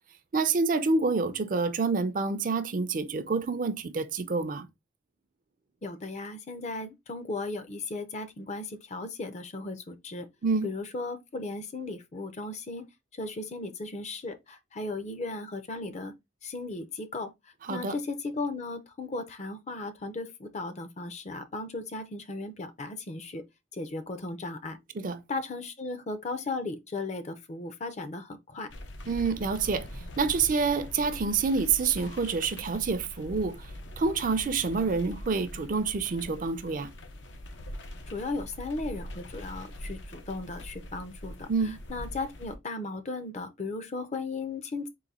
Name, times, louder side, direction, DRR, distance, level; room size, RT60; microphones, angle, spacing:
voice 1, 0.3-4.7 10.4-10.7 17.6-18.0 24.9-25.2 29.1-33.7 34.0-36.9 41.5-41.8, right 4 dB, 45° right, 0.5 m, -27 dB
voice 2, 5.8-10.3 10.6-12.8 13.1-16.1 16.4-23.4 23.7-24.8 25.3-28.7 38.1-44.9, left 3 dB, 40° left, 0.6 m, -36 dB
sound 1, 28.7-42.5, equal, 80° left, 0.8 m, -43 dB
3.9 x 2.6 x 4.1 m
head